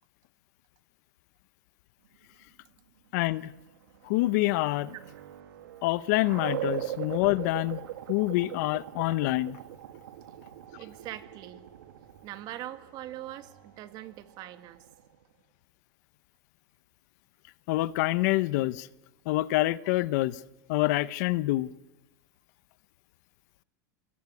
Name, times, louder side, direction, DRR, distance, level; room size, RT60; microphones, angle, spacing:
voice 1, 3.1-3.5 4.0-4.9 5.8-7.8 8.1-9.6 17.7-18.9 19.3-20.4 20.7-21.7, left 18 dB, 55° left, 0.8 m, -26 dB
sound 1, 3.7-15.2, right 13 dB, 85° right, 2.4 m, -41 dB
voice 2, 10.8-11.6 12.2-14.8, right 13 dB, 40° right, 2.1 m, -42 dB
26.0 x 20.0 x 9.7 m
supercardioid pair, 155°, 11 cm